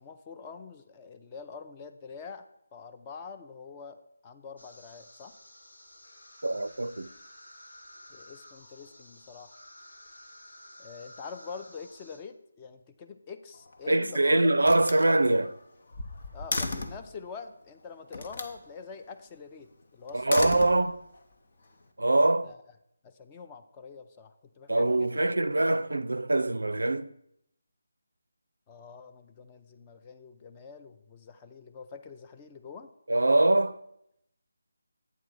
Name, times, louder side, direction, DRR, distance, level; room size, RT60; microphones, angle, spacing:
voice 1, 0.0-5.3 8.1-9.5 10.8-14.5 16.3-20.6 22.4-22.6 23.0-25.1 28.7-32.9, left 5 dB, 20° left, 0.5 m, -45 dB
sound 1, 4.6-12.2, left 1 dB, 75° left, 1.8 m, -52 dB
voice 2, 6.4-7.1 13.9-15.6 20.1-21.0 22.0-22.5 24.7-27.1 33.1-33.8, right 2 dB, 80° right, 0.4 m, -24 dB
Slam, 13.5-14.1 14.6-17.1 18.1-18.6 20.1-21.2, left 2 dB, 50° left, 0.8 m, -35 dB
8.3 x 3.7 x 6.3 m
figure-of-eight pair, 160°, 0 cm